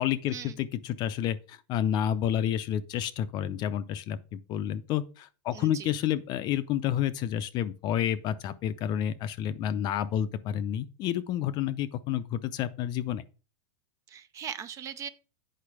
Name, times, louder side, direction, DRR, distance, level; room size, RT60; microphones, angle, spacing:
voice 1, 0.0-13.2, left 10 dB, 30° left, 0.6 m, -30 dB
voice 2, 5.5-5.9 14.1-15.1, right 8 dB, 20° right, 0.5 m, -39 dB
8.8 x 5.5 x 4.8 m
supercardioid pair, 160°, 15 cm